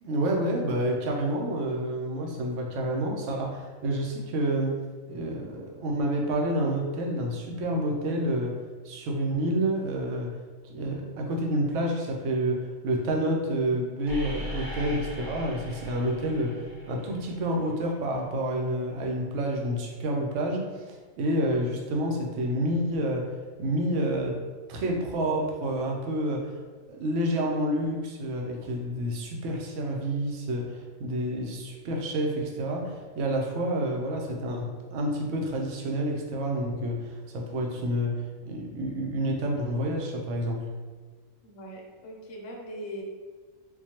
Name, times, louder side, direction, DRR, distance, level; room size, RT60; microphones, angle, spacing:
voice 1, 0.0-4.7 5.1-8.6 8.8-10.3 10.7-16.6 16.9-23.3 23.6-24.4 24.7-26.5 26.9-40.6, right 1 dB, 65° right, 0 dB, 0.9 m, -29 dB
sound 1, 14.1-17.9, left 1 dB, 35° right, 0.3 m, -39 dB
voice 2, 41.4-43.0, equal, 65° left, -1 dB, 1.0 m, -40 dB
4.3 x 2.2 x 2.8 m, 1.4 s
omnidirectional pair, 1.4 m